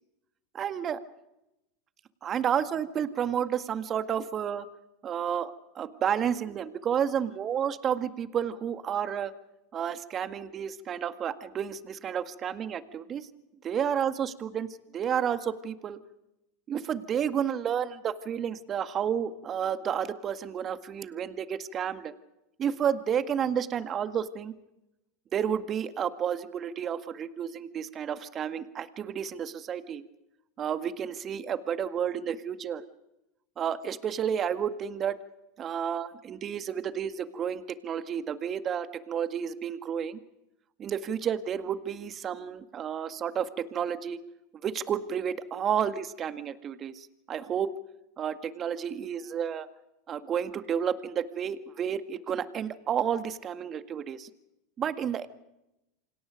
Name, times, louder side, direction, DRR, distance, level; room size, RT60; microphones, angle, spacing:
voice 1, 0.5-1.0 2.2-4.7 5.0-9.3 9.7-13.2 13.6-14.7 14.9-16.0 16.7-22.1 22.6-24.5 25.3-30.0 30.6-32.8 33.6-35.2 35.6-40.2 40.8-44.2 44.6-47.7 48.2-49.7 50.1-54.3 54.8-55.3, right 8 dB, 35° right, 11 dB, 1.8 m, -31 dB
28.5 x 26.0 x 5.2 m, 0.89 s
hypercardioid pair, 85°, 0 cm